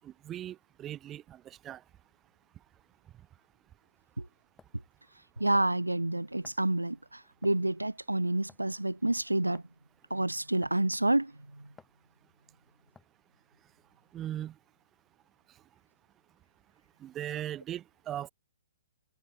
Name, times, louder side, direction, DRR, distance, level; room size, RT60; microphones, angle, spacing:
voice 1, 0.0-1.8 14.1-14.6 17.0-18.3, right 12 dB, 20° right, 2.2 m, -39 dB
sound 1, 3.9-4.0 4.6-4.8 5.5-5.8 6.4-6.7 7.4-7.7 8.5-8.8 9.5-9.7 10.6-10.9 11.8-12.0 13.0-13.2, left 5 dB, 10° left, 6.9 m, -57 dB
voice 2, 5.4-9.6 10.1-11.6, right 1 dB, 85° right, 1.3 m, -29 dB
figure-of-eight pair, 120°, 0 cm